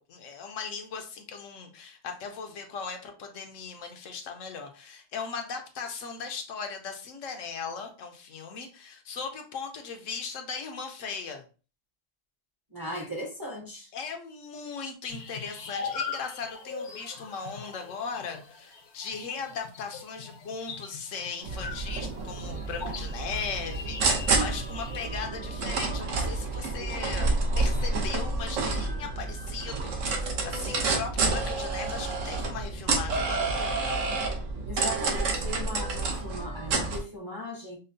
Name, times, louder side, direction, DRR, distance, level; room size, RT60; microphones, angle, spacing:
voice 1, 0.0-11.4 13.9-34.1, left 5 dB, 80° left, 1.0 m, -38 dB
voice 2, 12.7-13.9 34.7-37.8, left 1 dB, 20° right, 0.6 m, -38 dB
sound 1, 15.1-25.1, left 5 dB, 65° left, 0.8 m, -41 dB
sound 2, 21.4-37.0, right 3 dB, 75° right, 1.1 m, -29 dB
5.2 x 2.1 x 2.6 m
omnidirectional pair, 1.3 m